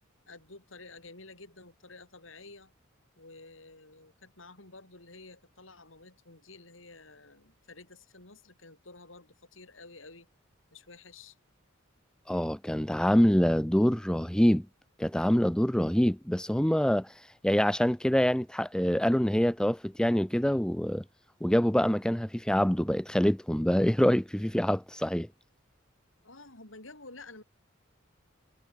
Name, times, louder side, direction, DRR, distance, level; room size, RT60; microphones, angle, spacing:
voice 1, 0.3-2.7 3.2-10.3 10.7-11.4 26.2-27.4, left 3 dB, 75° left, 6.2 m, -51 dB
voice 2, 12.3-14.7 15.0-17.1 17.4-21.0 21.4-25.3, equal, 5° left, 0.5 m, -25 dB
head